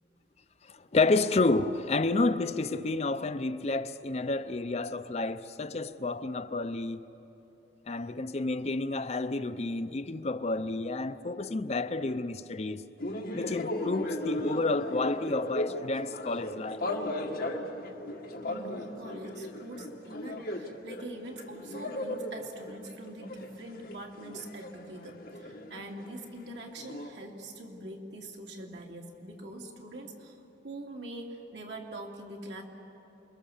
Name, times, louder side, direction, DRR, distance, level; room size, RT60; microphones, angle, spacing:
voice 1, 0.7-7.0 7.9-12.8 13.3-16.8, left 3 dB, 35° left, 0.6 m, -30 dB
sound 1, 13.0-21.0 21.3-26.3 26.8-27.1, left 1 dB, 55° left, 1.9 m, -36 dB
voice 2, 18.5-30.4 30.6-32.6, right 1 dB, 75° right, 2.9 m, -43 dB
28.5 x 22.5 x 7.3 m
head